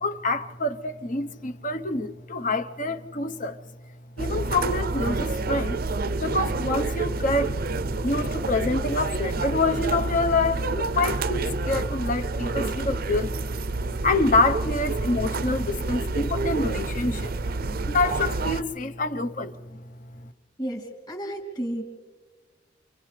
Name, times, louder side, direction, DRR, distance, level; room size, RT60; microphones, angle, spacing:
voice 1, 0.0-3.6 4.2-5.8 6.2-7.6 8.0-13.5 14.0-17.3 17.8-19.8, left 2 dB, 40° left, 1.0 m, -26 dB
sound 1, 4.2-18.6, right 3 dB, 50° right, 0.6 m, -28 dB
voice 2, 20.6-21.8, right 1 dB, 20° left, 3.0 m, -32 dB
29.5 x 27.5 x 3.3 m
head